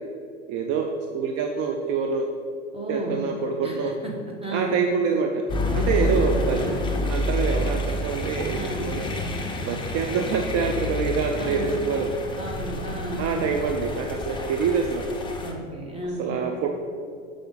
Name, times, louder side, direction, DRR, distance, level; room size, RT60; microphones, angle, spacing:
voice 1, 0.5-0.9 1.1-2.3 2.9-4.0 4.5-5.4 5.8-6.6 7.1-9.1 9.7-12.1 13.2-15.1 16.2-16.8, right 5 dB, 40° right, 3 dB, 0.6 m, -26 dB
voice 2, 2.7-3.2 3.6-4.1 4.4-4.8 5.7-6.8 8.5-9.0 11.4-11.8 12.4-13.3 15.4-16.4, right 1 dB, 15° right, 0 dB, 1.2 m, -33 dB
sound 1, 5.5-15.5, left 1 dB, 10° left, 0.7 m, -29 dB
6.7 x 5.0 x 4.0 m, 2.3 s
hypercardioid pair, 100°, 38 cm